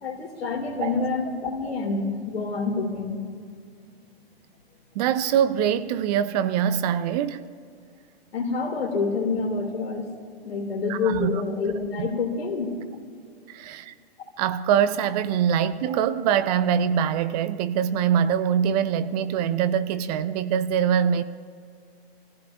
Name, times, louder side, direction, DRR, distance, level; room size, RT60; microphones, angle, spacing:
voice 1, 0.0-3.2 8.3-10.1 10.4-12.8, left 4 dB, 75° left, 2.7 m, -27 dB
voice 2, 4.9-7.4 10.9-11.3 12.0-12.1 13.5-13.9 14.4-21.2, right 8 dB, 40° right, 0.7 m, -23 dB
27.0 x 15.5 x 2.6 m
hypercardioid pair, 120°, 31 cm